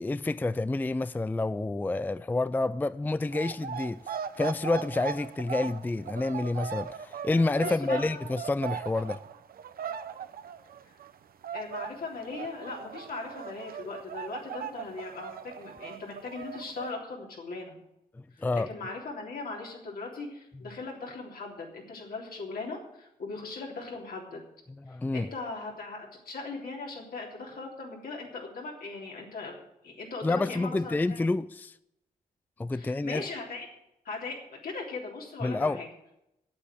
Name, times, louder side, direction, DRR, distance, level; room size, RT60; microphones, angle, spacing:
voice 1, 0.0-9.2 18.4-18.7 24.9-25.3 30.2-31.7 32.6-33.2 35.4-35.8, left 2 dB, 10° left, 0.3 m, -29 dB
sound 1, 3.3-11.2 11.4-16.9, right 8 dB, 75° right, 0.7 m, -39 dB
voice 2, 7.6-8.2 11.5-17.8 18.3-24.4 25.1-29.5 29.8-31.2 32.7-33.7 34.0-35.9, left 3 dB, 75° left, 3.4 m, -39 dB
8.6 x 8.2 x 9.0 m
cardioid pair, 75°, 15 cm